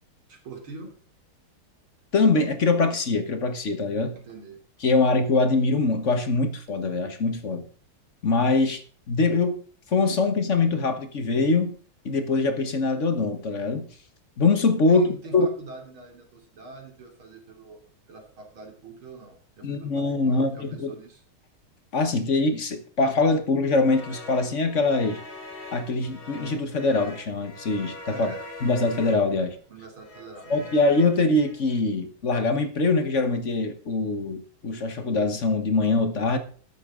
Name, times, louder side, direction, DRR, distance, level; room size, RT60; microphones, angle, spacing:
voice 1, 0.3-0.9 4.1-4.6 14.9-17.8 18.1-21.2 28.1-28.4 29.7-30.6, right 3 dB, 75° right, 3.9 m, -43 dB
voice 2, 2.1-4.2 4.8-7.7 8.2-8.8 9.1-9.6 9.9-11.8 12.0-13.9 14.4-15.5 19.6-21.0 21.9-25.2 25.7-28.3 28.6-29.6 30.5-36.4, left 3 dB, 40° left, 1.4 m, -23 dB
sound 1, 23.8-29.5 30.0-31.8, left 2 dB, 75° left, 4.3 m, -43 dB
13.5 x 10.5 x 3.8 m
omnidirectional pair, 2.3 m